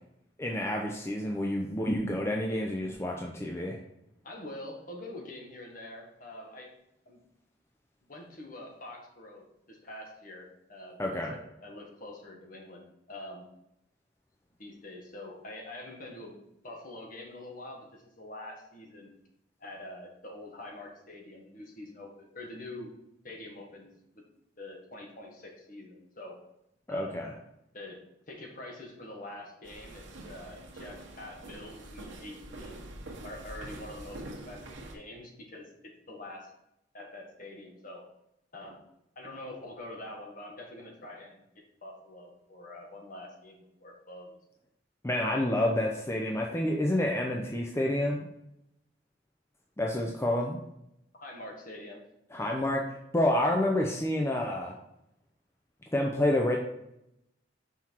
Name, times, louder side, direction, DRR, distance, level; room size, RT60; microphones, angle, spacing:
voice 1, 0.4-3.8 11.0-11.3 26.9-27.3 45.0-48.3 49.8-50.6 52.3-54.7 55.9-56.6, left 1 dB, 15° left, 0 dB, 0.5 m, -29 dB
voice 2, 4.2-6.7 7.0-7.2 8.0-13.4 14.6-16.4 16.6-19.1 19.6-22.9 23.2-24.2 24.6-26.4 26.9-27.2 27.7-28.0 28.3-32.8 33.2-34.6 34.9-36.5 36.9-38.0 38.5-38.8 39.1-44.4 51.1-52.0, left 1 dB, 45° left, 1 dB, 1.4 m, -45 dB
sound 1, 29.6-34.9, right 1 dB, 85° right, 1.3 m, -45 dB
5.8 x 4.4 x 4.4 m, 0.82 s
head